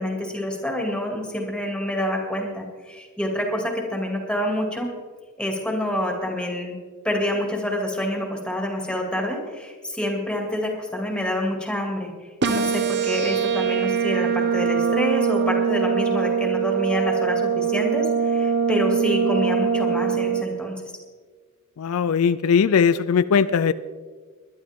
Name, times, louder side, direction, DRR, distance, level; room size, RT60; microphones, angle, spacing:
voice 1, 0.0-4.9 5.4-6.7 7.0-12.1 12.5-20.8, equal, 5° left, 0 dB, 2.6 m, -27 dB
sound 1, 12.4-20.4, right 6 dB, 50° right, 0.9 m, -22 dB
voice 2, 21.8-23.7, left 6 dB, 75° left, 15 dB, 0.4 m, -19 dB
21.0 x 11.5 x 3.7 m, 1.5 s
head